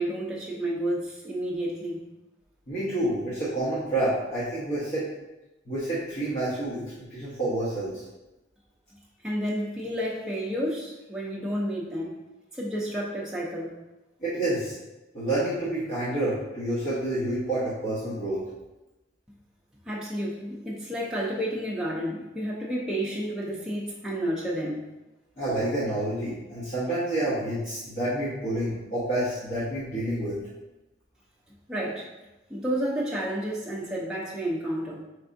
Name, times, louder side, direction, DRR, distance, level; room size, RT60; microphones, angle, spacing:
voice 1, 0.0-2.0 9.2-12.1 12.5-13.7 19.9-24.8 31.7-32.1 32.5-35.0, equal, 5° right, -5 dB, 0.5 m, -30 dB
voice 2, 2.7-5.1 5.7-8.0 14.2-14.7 15.1-18.4 25.4-30.4, right 1 dB, 45° left, -11 dB, 1.0 m, -28 dB
4.7 x 3.4 x 2.6 m, 1.0 s
head